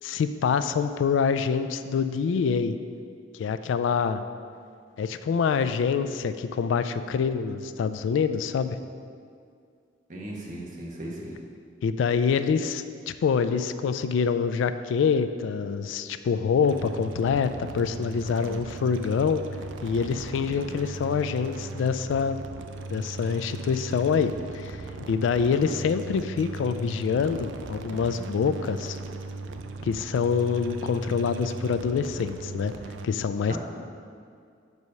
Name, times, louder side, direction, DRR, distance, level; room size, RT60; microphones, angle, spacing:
voice 1, 0.0-2.8 3.3-4.2 5.0-8.8 11.8-19.4 19.8-22.4 22.9-29.0 29.8-32.7 33.0-33.6, left 6 dB, 75° left, 11 dB, 0.3 m, -26 dB
voice 2, 10.1-11.3 33.5-33.6, right 1 dB, 45° right, -3 dB, 1.1 m, -37 dB
sound 1, 16.6-33.1, right 3 dB, 70° right, 0.4 m, -38 dB
5.3 x 4.8 x 5.4 m, 2.3 s
head